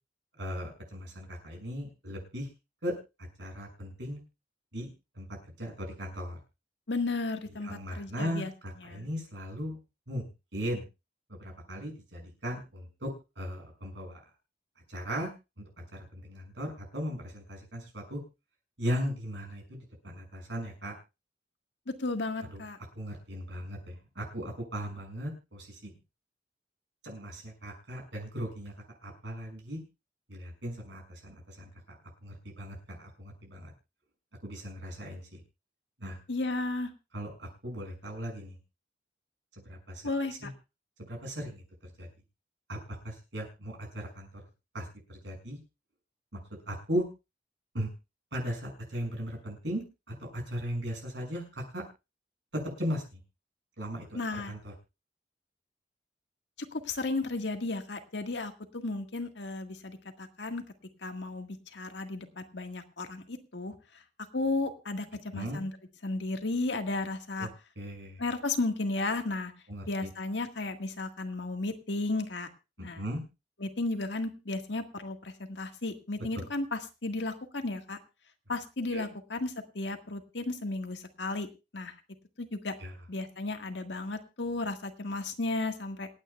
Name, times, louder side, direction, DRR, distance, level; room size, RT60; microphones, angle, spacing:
voice 1, 0.4-2.5 2.8-4.2 4.7-4.9 5.1-5.3 5.6-6.4 7.6-9.8 10.1-10.8 11.3-13.1 13.4-14.2 14.9-15.3 15.9-18.2 18.8-20.9 22.5-22.6 22.9-26.0 27.0-28.7 29.0-29.8 30.3-33.7 34.4-35.4 36.0-36.2 37.1-38.6 39.6-40.0 40.4-40.5 41.0-42.1 42.7-44.4 44.7-45.6 46.3-46.4 46.7-47.0 47.7-47.9 48.3-49.8 50.1-51.8 52.5-53.2 53.8-54.2 54.5-54.7 65.3-65.6 67.4-67.5 67.8-68.2 69.7-70.1 72.8-73.2 76.4-76.5 78.9-79.1 82.8-82.9, equal, 90° right, 1 dB, 6.4 m, -37 dB
voice 2, 6.9-8.5 8.8-9.1 21.9-22.8 36.3-36.9 40.0-40.5 54.1-54.5 56.7-60.6 61.0-63.7 64.3-65.0 65.3-65.7 66.0-67.5 68.2-69.5 69.9-72.5 72.8-73.0 73.6-78.0 78.5-81.5 81.7-81.9 82.4-82.7 83.1-86.1, left 2 dB, 80° left, 6 dB, 1.7 m, -34 dB
27.5 x 9.2 x 2.3 m, 0.27 s
head